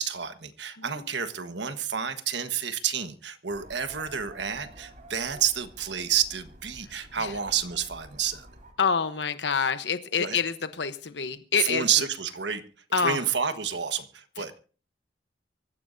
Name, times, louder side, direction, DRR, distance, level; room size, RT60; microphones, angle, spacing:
voice 1, 0.0-8.5 10.2-10.4 11.6-12.6 13.0-14.6, right 8 dB, 75° right, 9 dB, 1.4 m, -29 dB
voice 2, 0.8-1.1 7.2-7.4 8.8-11.9 12.9-13.2 14.4-14.5, left 6 dB, 75° left, 11 dB, 1.0 m, -27 dB
sound 1, 3.5-8.7, right 1 dB, 45° right, 3.6 m, -49 dB
24.5 x 15.0 x 2.7 m, 0.37 s
head